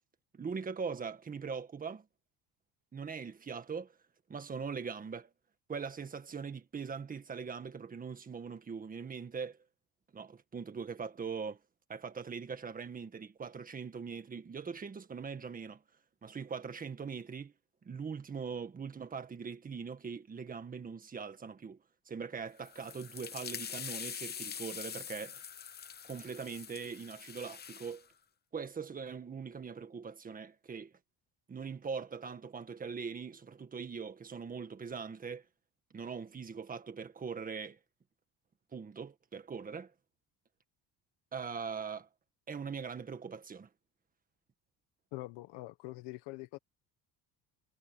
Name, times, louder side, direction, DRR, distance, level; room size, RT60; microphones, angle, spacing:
voice 1, 0.3-2.0 2.9-3.9 4.3-5.3 5.7-9.6 10.1-11.6 11.9-15.8 16.2-17.5 17.8-21.8 22.0-25.4 26.0-28.1 28.5-30.9 31.5-35.4 35.9-37.8 38.7-39.9 41.3-42.1 42.5-43.7, right 5 dB, 20° right, 1.7 m, -41 dB
sound 1, 22.6-28.0, left 8 dB, 25° left, 0.9 m, -44 dB
voice 2, 45.1-46.6, left 20 dB, 85° left, 1.3 m, -44 dB
cardioid pair, 160°, 39 cm